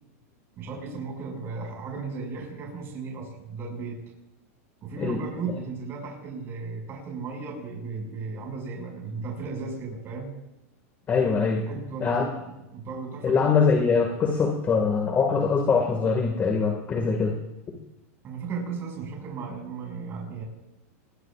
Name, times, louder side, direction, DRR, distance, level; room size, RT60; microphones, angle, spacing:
voice 1, 0.6-4.0 4.8-10.3 11.7-12.1 12.5-13.4 18.2-20.4, right 4 dB, 30° right, -1 dB, 6.1 m, -35 dB
voice 2, 11.1-11.7 12.0-12.3 13.2-17.4 17.7-17.8, left 5 dB, 20° left, 3 dB, 2.0 m, -23 dB
26.5 x 20.5 x 2.5 m, 0.93 s
supercardioid pair, 145°, 8 cm